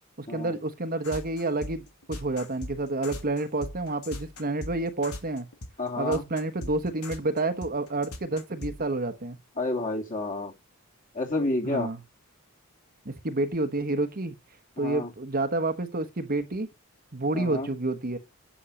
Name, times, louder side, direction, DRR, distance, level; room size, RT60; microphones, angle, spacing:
voice 1, 0.2-5.5 6.0-9.4 11.6-12.0 13.0-14.4 14.8-16.7 17.1-18.2, right 2 dB, 45° right, 1.2 m, -29 dB
sound 1, 1.0-8.8, left 1 dB, 90° left, 2.6 m, -39 dB
voice 2, 5.8-6.2 9.6-10.5 11.1-11.9 14.8-15.1 17.3-17.7, left 2 dB, 35° left, 2.9 m, -30 dB
10.0 x 6.4 x 6.5 m
head